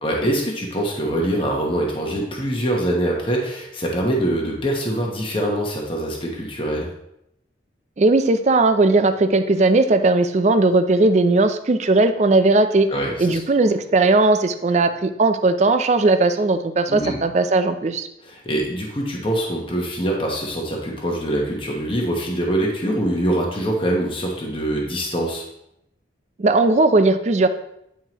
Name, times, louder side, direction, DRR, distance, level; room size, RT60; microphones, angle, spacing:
voice 1, 0.0-6.9 12.9-13.4 16.9-17.2 18.2-25.4, right 1 dB, 30° left, -1 dB, 1.0 m, -24 dB
voice 2, 8.0-12.9 13.2-18.1 26.4-27.5, right 2 dB, 40° right, 10 dB, 0.4 m, -17 dB
9.1 x 4.6 x 3.0 m, 0.81 s
head